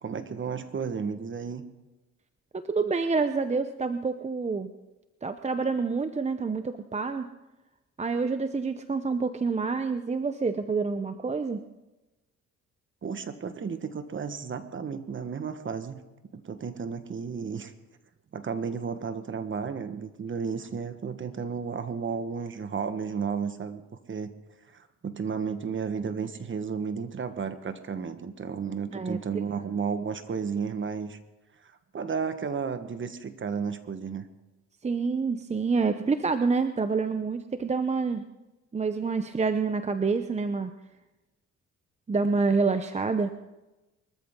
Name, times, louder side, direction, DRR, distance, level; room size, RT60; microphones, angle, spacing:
voice 1, 0.0-1.6 13.0-16.0 16.3-17.7 18.3-23.8 24.1-24.3 24.7-31.2 31.6-34.2, right 6 dB, 40° right, 10 dB, 1.4 m, -33 dB
voice 2, 2.7-4.7 5.2-7.3 8.0-11.6 28.9-29.2 34.8-38.2 38.7-40.7 42.1-43.3, right 4 dB, 20° right, 9 dB, 0.7 m, -27 dB
23.5 x 13.5 x 3.8 m, 1.1 s
cardioid pair, 90°, 30 cm